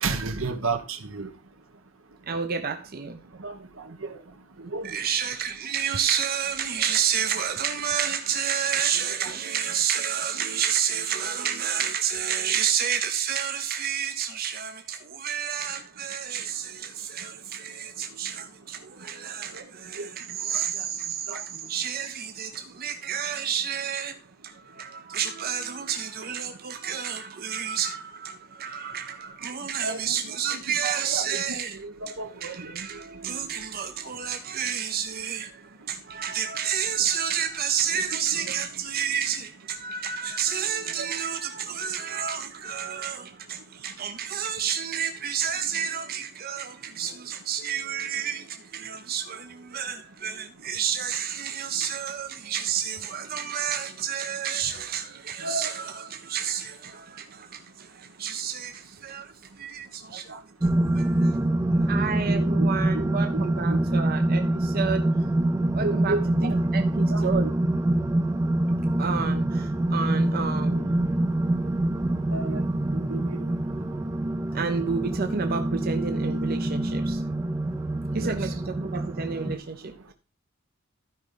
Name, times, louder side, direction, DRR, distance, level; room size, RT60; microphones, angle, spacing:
voice 1, 0.0-1.3 3.4-3.6 4.0-4.1 4.7-5.0 9.2-9.3 20.0-20.1 21.3-21.4 29.8-31.4 31.7-32.9 33.2-33.3 37.9-38.0 38.5-38.6 55.4-55.7 62.3-63.1 63.3-63.8 65.8-66.5 67.1-67.5 72.3-72.6 72.9-73.4 78.2-78.4, right 3 dB, 75° right, 1.2 m, -33 dB
voice 2, 2.3-3.2 4.8-24.2 24.4-31.8 32.1-60.4 60.9-61.4 61.9-65.1 65.7-67.5 69.0-71.0 74.5-77.2 78.1-80.1, right 7 dB, 50° right, 0.7 m, -30 dB
sound 1, 60.6-79.6, right 1 dB, 15° right, 0.5 m, -25 dB
13.0 x 5.2 x 3.9 m
head